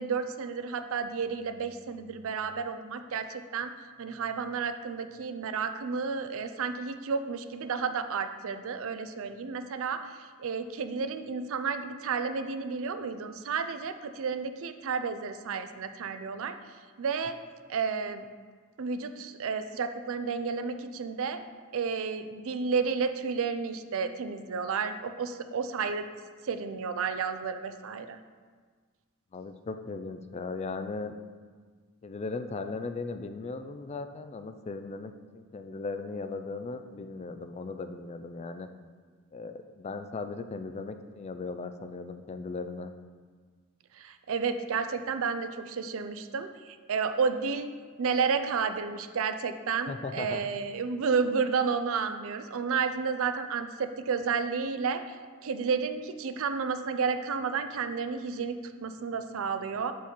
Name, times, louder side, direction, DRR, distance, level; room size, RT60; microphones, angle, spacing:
voice 1, 0.0-3.7 4.0-16.5 17.0-17.4 17.7-18.2 18.8-21.4 21.7-26.1 26.4-28.2 43.9-47.7 48.0-55.1 55.4-59.9, right 5 dB, 65° right, 9 dB, 0.5 m, -31 dB
voice 2, 29.3-31.1 32.0-38.7 39.3-42.9 49.9-50.4, left 3 dB, 30° left, 8 dB, 0.3 m, -37 dB
6.9 x 4.7 x 4.4 m, 1.5 s
head